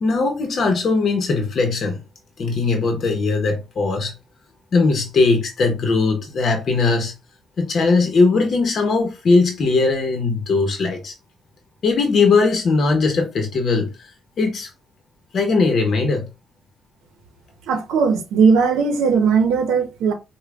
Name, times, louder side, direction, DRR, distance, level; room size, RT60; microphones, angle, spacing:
voice 1, 0.0-2.0 2.4-4.1 4.7-7.1 7.6-11.1 11.8-14.1 14.4-14.7 15.3-16.3, left 3 dB, 55° left, 0.8 m, -19 dB
voice 2, 17.7-20.1, right 5 dB, 90° right, 0.7 m, -18 dB
5.0 x 2.2 x 2.3 m
cardioid pair, 90°, 0 cm